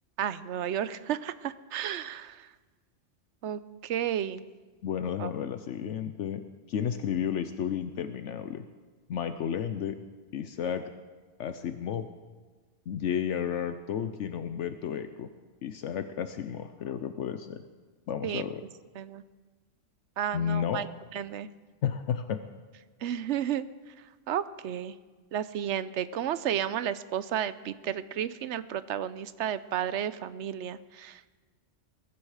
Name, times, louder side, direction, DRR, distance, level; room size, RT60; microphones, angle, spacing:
voice 1, 0.2-2.5 3.4-4.4 5.2-5.3 18.2-18.4 18.9-19.2 20.2-20.9 21.1-21.5 23.0-23.6 24.3-24.9 25.3-31.2, right 10 dB, 70° right, 14 dB, 0.9 m, -32 dB
voice 2, 4.8-6.4 6.7-8.6 9.1-10.0 10.3-10.9 11.4-12.1 12.9-15.3 15.6-17.6 18.1-18.6 20.3-20.9 21.8-22.4, left 8 dB, 75° left, 9 dB, 1.0 m, -32 dB
21.5 x 11.5 x 4.9 m, 1.3 s
omnidirectional pair, 1.3 m